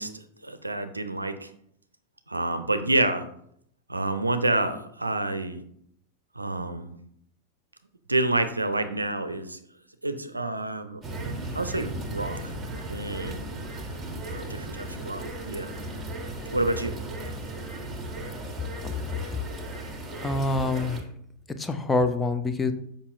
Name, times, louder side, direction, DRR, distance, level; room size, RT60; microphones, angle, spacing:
voice 1, 0.0-1.5 2.3-3.2 3.9-5.6 6.4-6.9 8.1-9.6 10.0-11.0 11.5-12.5 12.9-13.4 14.3-15.7 16.5-17.0, right 2 dB, 85° right, 9 dB, 0.5 m, -28 dB
sound 1, 11.0-21.0, right 1 dB, 15° right, 1.4 m, -36 dB
voice 2, 18.8-19.2 20.2-21.0 21.6-22.7, left 3 dB, 10° left, 8 dB, 0.6 m, -26 dB
7.0 x 5.2 x 2.6 m, 0.71 s
figure-of-eight pair, 90°, 0 cm